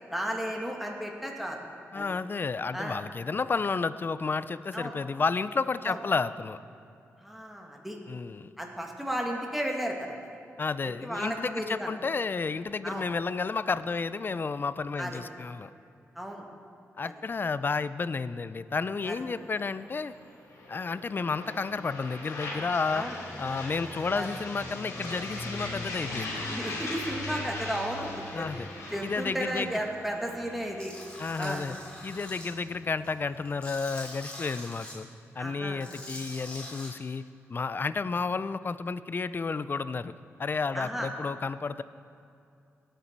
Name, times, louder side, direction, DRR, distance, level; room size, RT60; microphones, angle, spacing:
voice 1, 0.1-1.6 1.9-2.1 2.7-3.0 4.7-5.0 5.8-6.0 7.2-8.0 8.6-10.2 10.8-11.9 12.8-13.1 15.0-15.2 16.2-16.5 17.0-17.1 19.1-19.2 22.9-23.2 24.1-24.3 26.4-28.1 28.3-28.5 28.9-30.9 31.4-31.6 35.4-35.9 40.7-41.1, equal, 5° right, 1 dB, 1.9 m, -34 dB
voice 2, 1.9-6.6 8.1-8.5 10.6-15.7 17.0-20.1 20.7-23.1 23.4-26.5 28.3-28.7 29.0-29.8 31.2-31.8 32.0-35.1 35.4-37.2 37.5-40.1 40.4-41.8, left 4 dB, 40° left, 15 dB, 0.4 m, -31 dB
sound 1, 18.7-33.6, left 2 dB, 85° left, 2.4 m, -40 dB
Tools, 30.8-32.5 33.0-34.9 35.7-36.9, left 1 dB, 20° left, 3.3 m, -44 dB
18.0 x 6.8 x 4.6 m, 2.5 s
cardioid pair, 60°, 5 cm